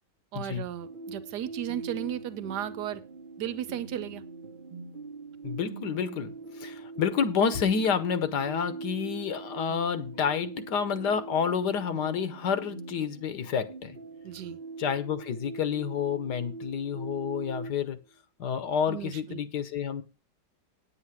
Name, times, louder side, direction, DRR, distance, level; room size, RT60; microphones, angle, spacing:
voice 1, 0.3-3.0 3.4-4.2 14.2-14.6 18.9-19.4, right 11 dB, 70° right, 1.4 m, -35 dB
sound 1, 0.8-17.8, right 4 dB, 40° right, 0.8 m, -42 dB
voice 2, 5.4-14.0 14.8-18.0 18.4-20.0, left 7 dB, 70° left, 1.5 m, -29 dB
9.4 x 8.7 x 4.7 m
omnidirectional pair, 1.9 m